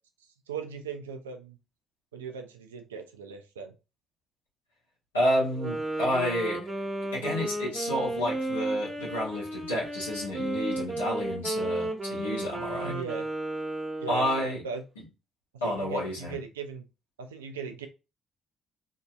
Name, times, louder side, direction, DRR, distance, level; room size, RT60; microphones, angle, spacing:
voice 1, 0.5-1.6 2.1-3.7 12.8-13.3 14.0-14.8 15.6-16.9 17.2-17.9, right 5 dB, 85° right, 6 dB, 0.3 m, -38 dB
voice 2, 5.1-6.6 7.1-12.9 14.1-14.6 15.6-16.3, equal, 85° left, -6 dB, 1.0 m, -30 dB
Wind instrument woodwind instrument, 5.5-14.4, right 1 dB, 25° right, 1.1 m, -33 dB
2.8 x 2.6 x 2.2 m, 0.29 s
figure-of-eight pair, 45°, 0 cm